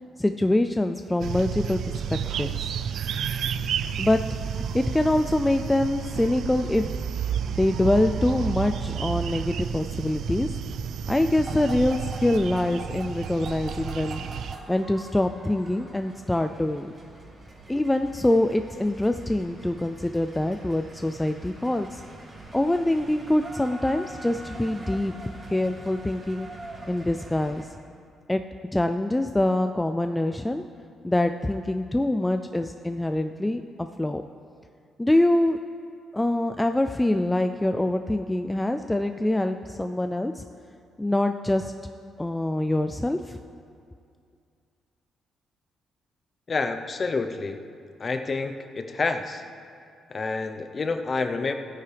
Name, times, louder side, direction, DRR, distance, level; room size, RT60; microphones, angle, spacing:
voice 1, 0.2-2.5 4.0-4.4 4.7-7.0 7.5-10.6 11.1-14.3 14.7-16.9 17.7-22.0 22.5-25.1 25.5-26.5 26.9-27.7 28.3-30.6 31.0-34.2 35.0-35.6 36.1-40.4 41.0-41.7 42.2-43.4, left 1 dB, 10° left, 7 dB, 0.4 m, -25 dB
sound 1, 1.2-14.6, right 7 dB, 70° right, 0.4 m, -31 dB
sound 2, 11.4-27.6, right 2 dB, 30° right, 2.7 m, -43 dB
voice 2, 46.5-47.6 48.0-49.4 50.1-51.5, left 4 dB, 35° left, 6 dB, 0.8 m, -28 dB
16.0 x 9.5 x 3.4 m, 2.4 s
cardioid pair, 90°, 0 cm